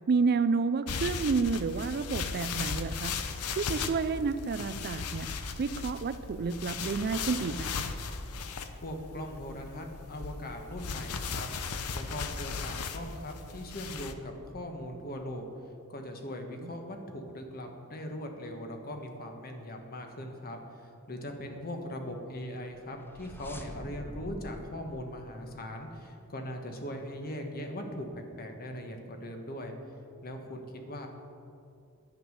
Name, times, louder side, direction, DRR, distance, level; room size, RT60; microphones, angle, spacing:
voice 1, 0.1-3.2 3.6-5.3 5.6-7.9 16.6-16.7, right 4 dB, 45° right, 13 dB, 0.4 m, -30 dB
sound 1, 0.9-14.1, left 5 dB, 90° left, 0.7 m, -37 dB
voice 2, 8.8-11.5 11.9-15.5 15.9-29.7 30.2-31.1, left 1 dB, 45° left, 4 dB, 1.3 m, -40 dB
sound 2, 22.6-26.2, equal, 10° left, 0.7 m, -46 dB
10.5 x 8.4 x 6.4 m, 2.5 s
head